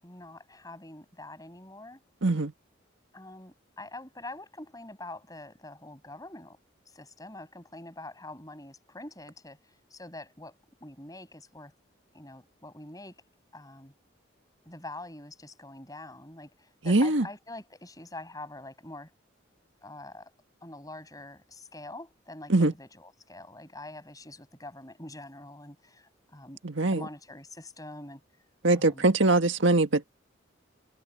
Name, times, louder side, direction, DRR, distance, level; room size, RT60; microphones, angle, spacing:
voice 1, 0.0-2.0 3.1-6.6 6.9-11.7 12.1-13.2 13.5-13.9 14.6-19.1 19.8-20.3 20.6-28.2 28.7-29.1, left 2 dB, 20° left, 7.8 m, -45 dB
voice 2, 2.2-2.5 16.9-17.3 22.5-22.7 26.6-27.0 28.6-30.1, right 2 dB, 70° right, 1.6 m, -22 dB
head